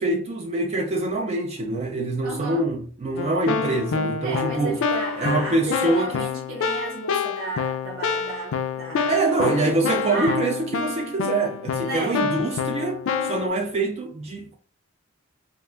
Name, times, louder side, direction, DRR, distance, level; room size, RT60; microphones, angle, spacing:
voice 1, 0.0-4.8 5.2-6.3 9.1-14.5, right 2 dB, 30° right, 0.3 m, -25 dB
voice 2, 2.2-2.7 4.2-9.7 10.0-10.4 11.8-12.2 13.2-13.3, right 2 dB, 65° right, 0.9 m, -33 dB
Keyboard (musical), 3.2-13.5, left 6 dB, 65° left, 0.3 m, -27 dB
2.4 x 2.1 x 3.5 m
head